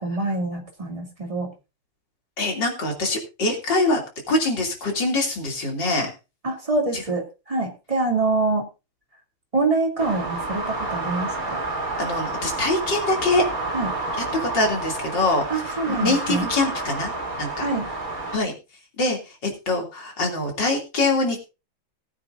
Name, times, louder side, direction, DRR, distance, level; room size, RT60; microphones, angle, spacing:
voice 1, 0.0-1.5 6.4-8.7 9.5-11.6 13.7-14.0 15.5-16.5 17.6-17.8, right 3 dB, 15° right, 1 dB, 2.8 m, -25 dB
voice 2, 2.4-4.0 4.3-6.1 6.9-7.0 12.0-13.4 14.2-17.1 17.4-17.7 18.3-18.5 19.0-21.4, left 2 dB, 55° left, 1 dB, 3.6 m, -24 dB
sound 1, 10.0-18.4, right 2 dB, 40° right, 3.7 m, -30 dB
19.5 x 9.2 x 2.6 m, 0.29 s
omnidirectional pair, 2.3 m